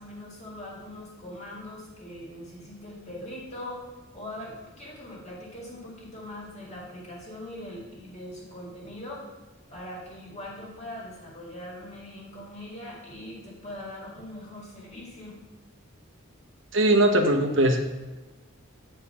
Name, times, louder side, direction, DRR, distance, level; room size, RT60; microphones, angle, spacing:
voice 1, 0.0-9.3 9.7-15.4, left 1 dB, 30° left, -4 dB, 2.0 m, -41 dB
voice 2, 16.7-17.8, right 1 dB, 60° right, 5 dB, 0.9 m, -20 dB
9.2 x 4.5 x 5.5 m, 1.2 s
head